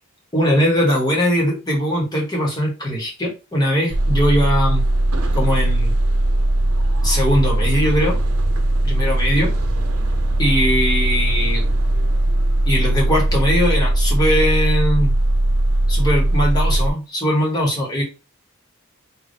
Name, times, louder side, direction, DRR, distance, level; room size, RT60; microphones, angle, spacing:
voice 1, 0.3-4.8 5.3-5.9 7.0-8.2 8.8-9.5 10.4-11.6 12.7-15.1 15.9-18.0, equal, 20° left, -2 dB, 1.4 m, -20 dB
sound 1, 3.9-16.9, right 1 dB, 85° right, 0.7 m, -19 dB
3.5 x 2.6 x 4.0 m, 0.30 s
head